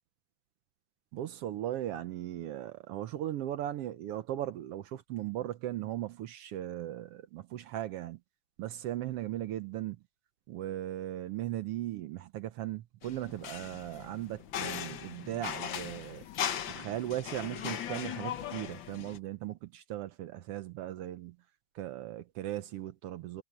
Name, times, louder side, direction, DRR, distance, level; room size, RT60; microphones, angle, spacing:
voice 1, 1.1-8.2 8.6-10.0 10.5-16.2 16.7-21.4 21.7-23.4, right 13 dB, 80° right, 1.4 m, -38 dB
sound 1, 13.0-19.2, left 9 dB, 70° left, 1.1 m, -38 dB
omnidirectional pair, 3.5 m